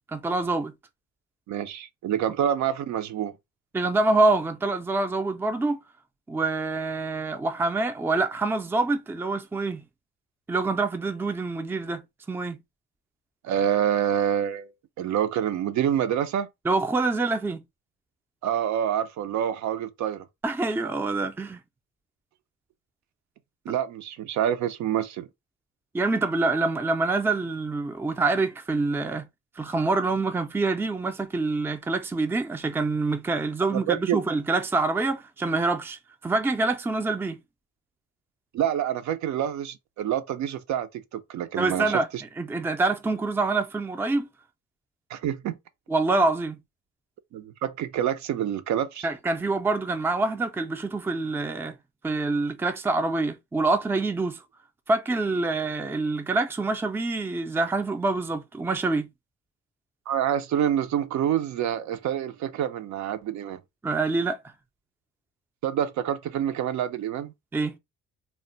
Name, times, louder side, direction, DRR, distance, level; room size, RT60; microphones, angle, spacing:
voice 1, 0.1-0.7 3.7-5.8 6.3-9.8 10.5-12.0 12.3-12.6 16.7-17.6 20.4-21.6 25.9-29.3 29.6-37.4 41.6-42.1 42.4-44.3 45.9-46.6 49.0-51.8 52.0-54.4 54.9-59.1 63.8-64.4 67.5-67.8, right 3 dB, 10° right, 0.4 m, -26 dB
voice 2, 1.5-3.3 13.4-14.7 15.0-16.5 18.4-20.3 23.7-25.3 33.7-34.2 38.5-42.2 45.1-45.6 47.3-49.1 60.1-63.6 65.6-67.3, right 10 dB, 70° right, 0.5 m, -27 dB
2.1 x 2.0 x 3.7 m
cardioid pair, 90°, 30 cm